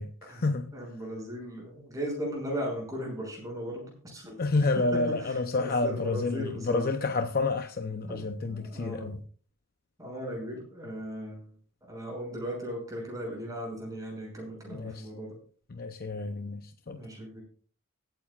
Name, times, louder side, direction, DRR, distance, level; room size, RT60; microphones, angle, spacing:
voice 1, 0.0-0.7 4.4-9.2 14.7-15.1 15.7-17.0, left 3 dB, 45° left, 0.7 m, -29 dB
voice 2, 0.7-4.4 5.6-6.9 8.1-8.2 8.5-9.2 10.0-11.5 11.9-15.3 16.9-17.4, equal, 15° right, 6.3 m, -37 dB
23.5 x 9.2 x 2.4 m
head